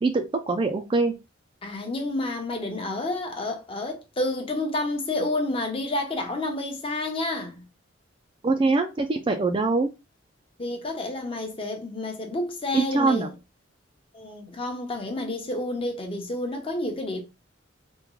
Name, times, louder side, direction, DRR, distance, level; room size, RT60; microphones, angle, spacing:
voice 1, 0.0-1.1 8.4-9.9 12.7-13.3, right 3 dB, 25° right, 0.3 m, -23 dB
voice 2, 1.6-7.6 10.6-13.3 14.1-17.2, left 2 dB, 30° left, 0.7 m, -30 dB
3.5 x 2.2 x 3.0 m
head